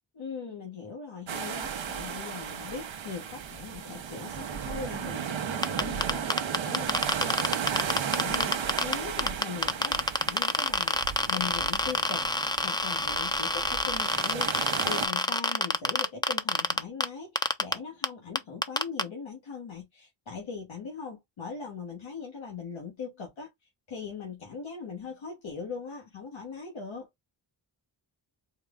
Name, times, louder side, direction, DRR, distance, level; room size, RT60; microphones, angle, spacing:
voice 1, 0.1-7.7 8.1-11.0 11.3-27.1, left 5 dB, 85° left, 1.4 m, -40 dB
sound 1, 1.3-15.1, right 7 dB, 80° right, 0.7 m, -35 dB
sound 2, 5.6-8.9 9.2-17.1 17.4-17.7 18.0-18.1 18.4-19.0, left 2 dB, 10° left, 0.5 m, -26 dB
4.5 x 2.1 x 3.6 m
cardioid pair, 60°, 46 cm